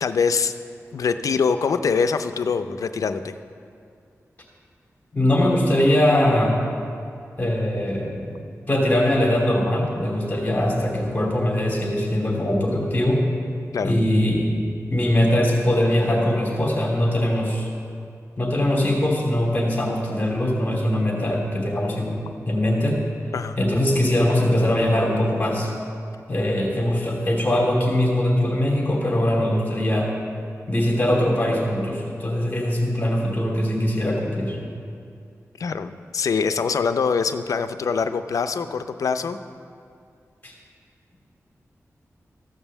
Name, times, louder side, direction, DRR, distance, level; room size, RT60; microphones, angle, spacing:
voice 1, 0.0-0.5 0.9-3.3 13.7-13.9 23.3-23.6 35.6-39.4, left 5 dB, 80° left, 10 dB, 0.5 m, -24 dB
voice 2, 5.1-6.5 7.4-8.3 8.7-13.2 13.8-14.5 14.9-17.7 18.4-22.2 22.5-23.0 23.6-25.7 26.3-30.1 30.7-34.6 40.4-40.5, left 1 dB, 30° left, -1 dB, 2.5 m, -21 dB
14.5 x 5.4 x 7.1 m, 2.3 s
wide cardioid pair, 75°, 6 cm